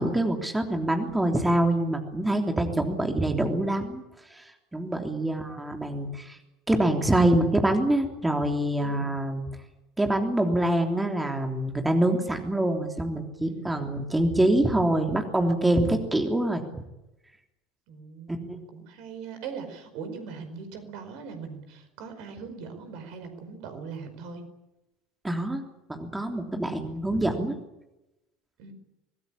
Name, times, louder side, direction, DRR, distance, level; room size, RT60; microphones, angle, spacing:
voice 1, 0.0-4.0 4.3-6.4 6.7-9.4 10.0-16.6 18.3-18.6 25.2-25.6 25.9-27.6, right 1 dB, 10° right, 3 dB, 3.4 m, -25 dB
voice 2, 2.4-2.7 5.2-5.5 5.8-5.9 8.8-9.1 13.5-13.8 15.9-16.0 17.9-24.4 28.6-28.7, right 5 dB, 55° right, 8 dB, 5.0 m, -41 dB
25.5 x 20.0 x 8.8 m, 0.95 s
figure-of-eight pair, 70°, 0 cm